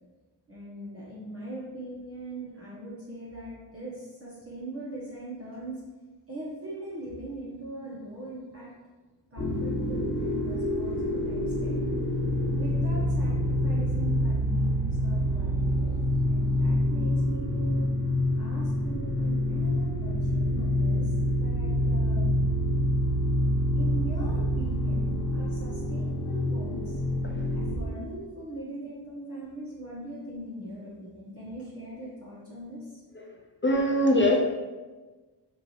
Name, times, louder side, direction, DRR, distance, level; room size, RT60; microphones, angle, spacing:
voice 1, 0.5-5.8 6.3-8.7 9.3-11.8 12.5-16.0 16.3-17.9 18.4-21.1 21.4-22.4 23.8-27.0 27.5-33.0, right 1 dB, 30° right, -9 dB, 1.2 m, -41 dB
sound 1, 9.4-27.8, left 1 dB, 60° left, 1.4 m, -27 dB
voice 2, 33.6-34.4, left 1 dB, 30° left, 1 dB, 0.4 m, -23 dB
5.9 x 2.6 x 3.1 m, 1.3 s
wide cardioid pair, 90°, 42 cm